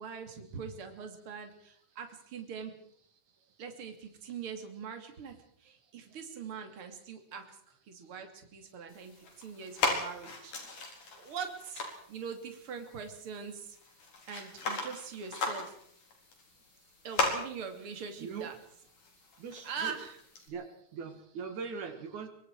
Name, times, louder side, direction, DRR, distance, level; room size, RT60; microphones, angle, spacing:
voice 1, 0.0-2.7 3.6-7.4 7.9-10.5 11.2-13.8 14.3-15.7 17.0-18.6 19.6-20.2, right 6 dB, 45° right, 5 dB, 3.3 m, -42 dB
sound 1, 8.9-20.5, left 3 dB, 90° left, 5.7 m, -38 dB
voice 2, 19.4-19.9 20.5-22.3, right 5 dB, 75° right, 7 dB, 3.3 m, -41 dB
24.5 x 24.0 x 4.7 m, 0.65 s
omnidirectional pair, 3.5 m